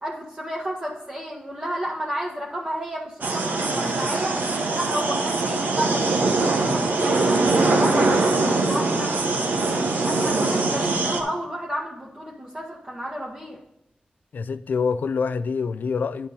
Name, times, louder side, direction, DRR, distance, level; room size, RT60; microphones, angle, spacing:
voice 1, 0.0-4.4 4.7-9.6 10.0-13.6, right 1 dB, 30° right, 1.5 m, -32 dB
sound 1, 3.2-11.2, right 3 dB, 85° right, 1.1 m, -22 dB
voice 2, 14.3-16.3, left 5 dB, 80° left, 0.4 m, -26 dB
9.9 x 4.4 x 5.3 m
wide cardioid pair, 75°, 3 cm